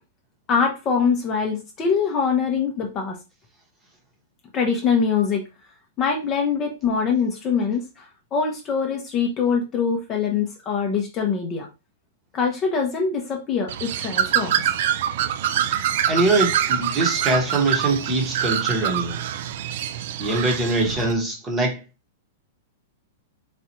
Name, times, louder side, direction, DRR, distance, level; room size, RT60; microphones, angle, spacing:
voice 1, 0.5-3.2 4.5-5.4 6.0-8.0 8.3-11.7 12.3-14.7, left 6 dB, 20° left, 0.7 m, -23 dB
Bird, 13.7-21.1, right 10 dB, 50° right, 0.4 m, -25 dB
voice 2, 16.1-19.2 20.2-21.8, right 2 dB, 15° right, 1.0 m, -23 dB
4.1 x 2.4 x 4.3 m
supercardioid pair, 165°, 0 cm